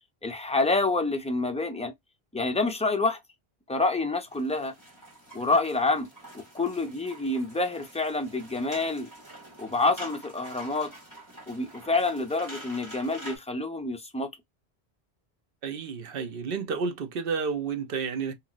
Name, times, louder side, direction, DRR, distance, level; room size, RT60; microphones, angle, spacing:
voice 1, 0.2-1.9 2.3-3.2 3.7-4.7 5.3-6.1 6.5-9.1 9.6-10.9 11.5-14.3, left 3 dB, 10° left, 0.3 m, -27 dB
sound 1, 4.3-13.4, right 1 dB, 15° right, 1.5 m, -46 dB
voice 2, 15.6-18.3, right 5 dB, 65° right, 0.8 m, -31 dB
2.9 x 2.7 x 2.3 m
omnidirectional pair, 1.1 m